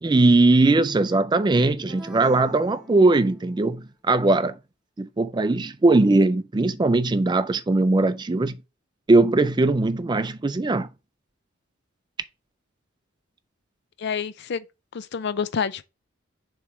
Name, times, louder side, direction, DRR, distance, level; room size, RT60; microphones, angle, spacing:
voice 1, 0.0-4.6 5.0-8.6 9.1-10.9, right 2 dB, 20° right, 0.4 m, -20 dB
sound 1, 1.9-3.7, left 1 dB, 5° right, 1.0 m, -44 dB
voice 2, 14.0-14.6 14.9-15.8, left 6 dB, 55° left, 0.5 m, -28 dB
7.1 x 3.1 x 4.7 m
head